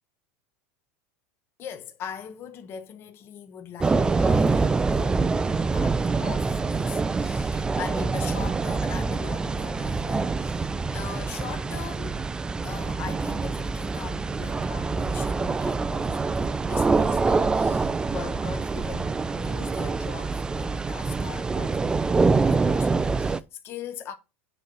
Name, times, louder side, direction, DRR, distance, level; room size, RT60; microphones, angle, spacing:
voice 1, 1.6-12.3 12.6-22.2 22.4-24.1, left 8 dB, 35° left, 0.9 m, -41 dB
sound 1, 3.8-23.4, right 4 dB, 10° right, 0.3 m, -25 dB
8.1 x 3.1 x 6.1 m
supercardioid pair, 130°, 7 cm